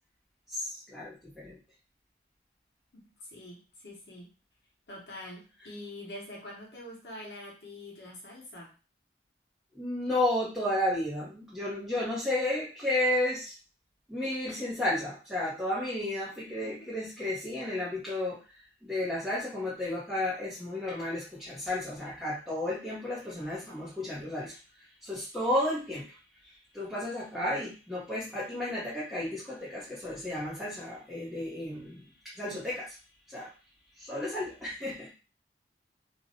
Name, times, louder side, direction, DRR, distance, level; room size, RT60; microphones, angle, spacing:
voice 1, 0.5-1.6 9.7-13.5 14.1-24.6 25.0-26.2 26.7-32.1 32.4-32.9 33.3-33.5 34.0-35.1, left 1 dB, ahead, -9 dB, 0.7 m, -32 dB
voice 2, 2.9-4.3 4.9-8.7 16.6-16.9, left 1 dB, 75° left, -3 dB, 0.9 m, -45 dB
2.6 x 2.1 x 2.7 m, 0.34 s
head